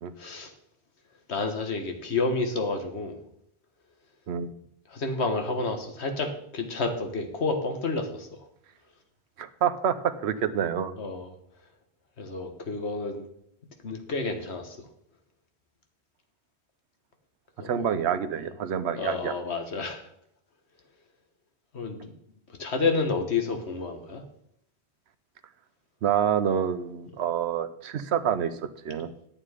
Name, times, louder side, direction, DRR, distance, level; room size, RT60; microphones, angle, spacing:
voice 1, 0.2-0.5 1.3-3.2 4.9-8.3 11.0-11.3 12.2-13.2 13.8-14.9 17.6-17.8 18.4-18.5 19.0-20.0 21.7-22.1 22.6-24.2, left 3 dB, 80° left, 6 dB, 1.6 m, -30 dB
voice 2, 9.4-11.0 17.7-19.3 26.0-28.6 28.8-29.1, right 8 dB, 75° right, 11 dB, 1.0 m, -27 dB
9.5 x 8.7 x 4.9 m, 0.71 s
omnidirectional pair, 1.1 m